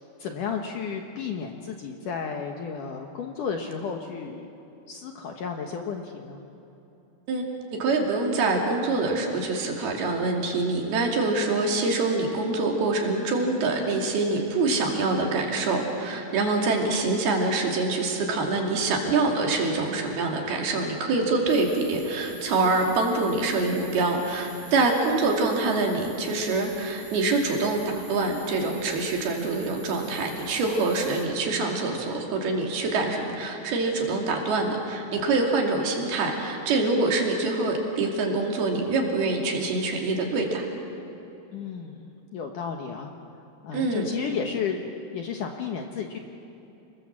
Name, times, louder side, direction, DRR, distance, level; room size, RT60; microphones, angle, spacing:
voice 1, 0.2-4.5 4.9-6.4 41.5-43.1 43.6-44.8 45.1-46.2, left 6 dB, 65° left, 3 dB, 2.2 m, -33 dB
voice 2, 7.8-40.6 43.7-44.1, right 3 dB, 65° right, 0 dB, 4.5 m, -25 dB
sound 1, 21.5-31.3, right 3 dB, 20° right, 2.0 m, -47 dB
29.5 x 21.0 x 7.4 m, 2.9 s
omnidirectional pair, 4.9 m